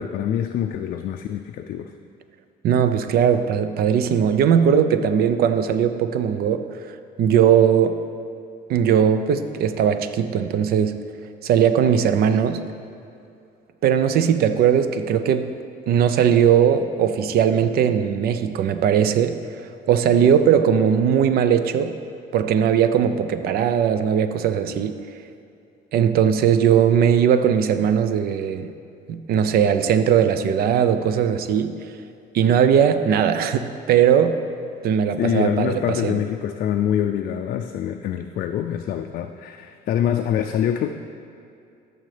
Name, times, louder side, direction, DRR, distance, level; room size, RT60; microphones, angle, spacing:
voice 1, 0.0-1.9 35.2-40.9, left 10 dB, 60° left, 5 dB, 0.4 m, -25 dB
voice 2, 2.6-6.6 7.2-8.0 8.7-11.0 11.4-12.6 13.8-15.5 15.9-22.0 22.3-25.0 25.9-28.7 29.1-31.7 32.3-34.4 34.8-36.2, right 8 dB, 65° right, 10 dB, 0.5 m, -19 dB
13.0 x 6.4 x 3.3 m, 2.5 s
cardioid pair, 110°, 17 cm